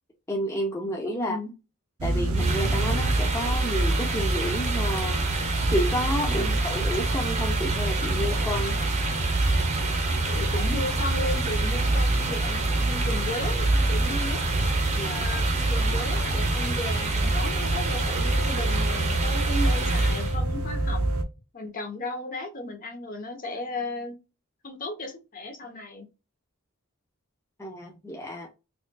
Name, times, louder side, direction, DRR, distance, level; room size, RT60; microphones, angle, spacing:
voice 1, 0.3-1.4 2.0-5.2 5.7-8.8 15.0-15.3 27.6-28.5, equal, 15° left, 0.4 m, -30 dB
voice 2, 1.1-1.5 6.3-6.6 10.3-14.4 15.1-21.0 21.5-24.2 24.6-26.1, left 2 dB, 40° left, 0.8 m, -35 dB
sound 1, 2.0-21.2, right 2 dB, 80° right, 0.6 m, -26 dB
sound 2, 2.3-20.4, right 3 dB, 30° right, 0.7 m, -31 dB
4.3 x 2.3 x 2.2 m
head